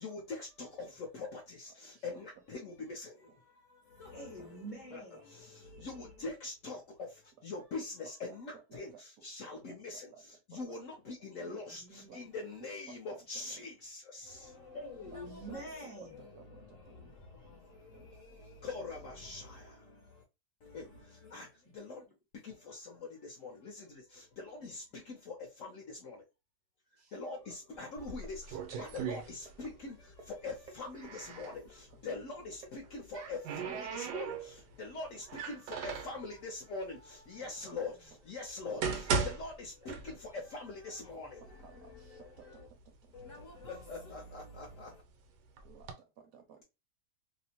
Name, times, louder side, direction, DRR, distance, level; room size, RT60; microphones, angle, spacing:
voice 1, 0.0-4.3 4.9-14.8 15.1-15.6 16.5-20.2 20.6-22.0 22.3-26.2 27.1-42.7 43.1-45.0, left 3 dB, 65° left, 0.8 m, -44 dB
voice 2, 4.1-5.4 11.3-12.3 14.7-16.3 18.4-18.5 21.6-21.8 24.6-24.7 37.3-38.0 39.8-39.9, equal, 30° left, 0.6 m, -48 dB
voice 3, 8.7-10.2 10.5-10.8 11.2-11.3 12.1-13.7 15.3-15.6 16.2-17.1 17.9-18.2 27.0-27.2 32.1-32.2 34.3-34.4 37.4-37.7 41.6-43.4 45.6-46.6, right 7 dB, 70° right, 0.9 m, -58 dB
sound 1, 27.2-33.7, right 2 dB, 50° right, 0.5 m, -58 dB
sound 2, 28.0-29.9 30.1-31.6 32.7-34.7 35.3-36.2 37.0-37.1 37.7-37.8 38.5-40.5 40.8-40.9 41.6-41.7 42.1-42.7 43.3-44.9 45.6-45.9, right 5 dB, 85° right, 1.2 m, -38 dB
2.9 x 2.0 x 2.7 m
omnidirectional pair, 1.8 m